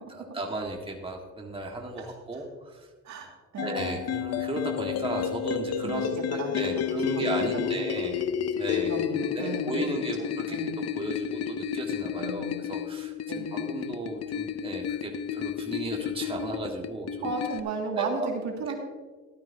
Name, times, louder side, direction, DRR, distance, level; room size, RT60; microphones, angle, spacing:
voice 1, 0.1-2.9 3.6-8.3 8.5-9.0 9.3-10.6 11.0-17.3 17.9-18.3 18.7-18.8, right 2 dB, 20° right, 0 dB, 1.8 m, -35 dB
voice 2, 3.0-4.0 5.8-6.1 6.4-6.8 7.2-7.3 7.6-7.9 8.9-9.9 10.2-10.7 12.2-12.5 13.3-13.7 17.2-18.7, right 4 dB, 65° right, 0 dB, 2.3 m, -35 dB
sound 1, 3.6-17.6, left 9 dB, 55° left, 0.6 m, -31 dB
14.0 x 12.0 x 2.8 m, 1.3 s
cardioid pair, 90°, 30 cm